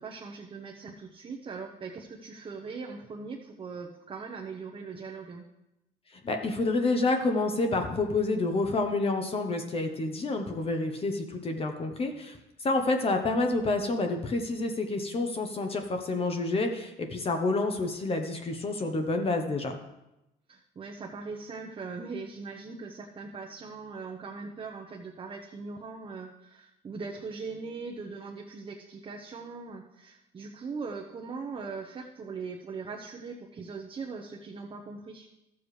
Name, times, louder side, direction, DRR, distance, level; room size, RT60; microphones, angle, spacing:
voice 1, 0.0-5.4 20.5-35.3, right 4 dB, 30° right, 0 dB, 0.8 m, -40 dB
voice 2, 6.1-19.8, left 2 dB, 35° left, 5 dB, 0.9 m, -28 dB
13.5 x 7.1 x 3.2 m, 0.91 s
cardioid pair, 110°, 17 cm